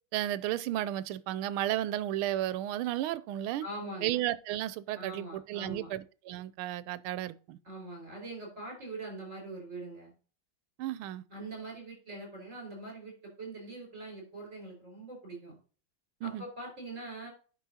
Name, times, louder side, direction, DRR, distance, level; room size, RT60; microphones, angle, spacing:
voice 1, 0.1-3.6 4.0-7.6 10.8-11.2 16.2-16.4, right 13 dB, 85° right, 1.5 m, -33 dB
voice 2, 3.6-4.1 4.9-5.9 7.6-10.1 11.3-15.5 16.2-17.3, right 2 dB, 35° right, 4.8 m, -43 dB
9.9 x 6.1 x 2.8 m
omnidirectional pair, 2.3 m